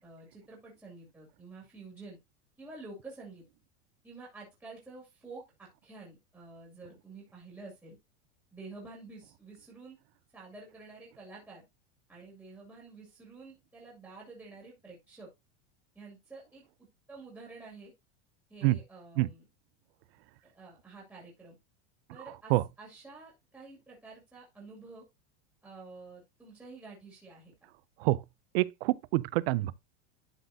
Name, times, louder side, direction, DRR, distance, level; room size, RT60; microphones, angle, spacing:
voice 1, 0.0-2.2 2.6-3.4 4.0-8.0 8.5-10.0 10.3-11.6 12.1-15.3 15.9-16.6 17.1-17.9 18.5-19.4 20.5-21.6 22.1-22.5 22.8-25.0 25.6-27.5, right 3 dB, 5° right, 2.2 m, -49 dB
voice 2, 22.2-22.6 28.0-28.2 28.5-29.7, right 19 dB, 60° right, 0.5 m, -27 dB
11.5 x 4.0 x 2.6 m
supercardioid pair, 150°, 35 cm